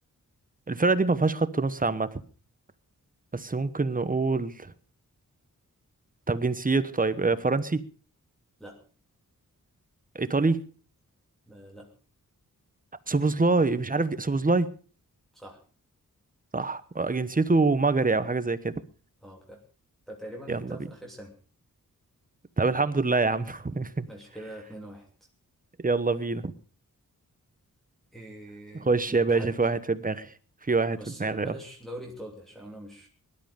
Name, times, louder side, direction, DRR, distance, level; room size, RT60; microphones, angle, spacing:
voice 1, 0.7-2.2 3.3-4.7 6.3-7.9 10.1-10.6 13.1-14.7 16.5-18.8 20.5-20.6 22.6-24.1 25.8-26.5 28.8-30.3 30.7-31.5, right 3 dB, 25° right, 13 dB, 1.1 m, -25 dB
voice 2, 11.5-11.9 15.3-15.6 19.2-19.6 20.1-21.4 24.1-25.1 28.1-29.5 31.0-33.1, right 1 dB, ahead, -2 dB, 2.9 m, -43 dB
19.5 x 12.0 x 5.2 m, 0.40 s
wide cardioid pair, 115°, 33 cm